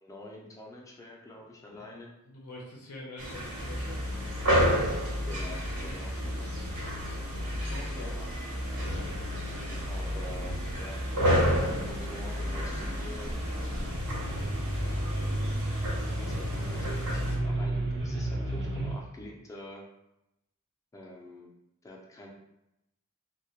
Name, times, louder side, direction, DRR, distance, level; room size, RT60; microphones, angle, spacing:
voice 1, 0.0-2.1 5.3-6.5 6.8-6.9 7.9-8.3 9.9-11.0 11.5-13.4 14.1-14.5 15.8-19.9 20.9-21.5 21.8-22.3, left 1 dB, 15° left, -1 dB, 0.4 m, -46 dB
voice 2, 1.7-4.0 7.3-8.1, left 2 dB, 85° left, -2 dB, 0.5 m, -46 dB
sound 1, 3.2-17.4, equal, 90° right, 0.9 m, -32 dB
sound 2, 3.6-18.9, equal, 55° right, 0.5 m, -34 dB
2.1 x 2.1 x 2.7 m, 0.88 s
head